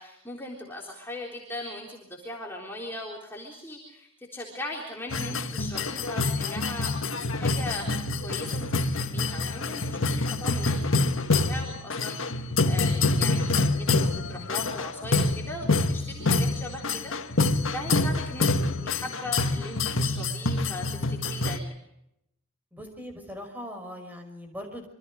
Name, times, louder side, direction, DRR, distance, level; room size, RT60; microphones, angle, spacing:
voice 1, 0.0-6.9 7.3-8.0 8.2-21.7, left 1 dB, 10° left, -2 dB, 3.8 m, -39 dB
sound 1, 5.1-21.6, left 3 dB, 75° left, 1.6 m, -26 dB
voice 2, 15.7-16.1 22.7-24.9, equal, 10° right, 5 dB, 5.6 m, -41 dB
27.5 x 25.0 x 5.0 m, 0.81 s
head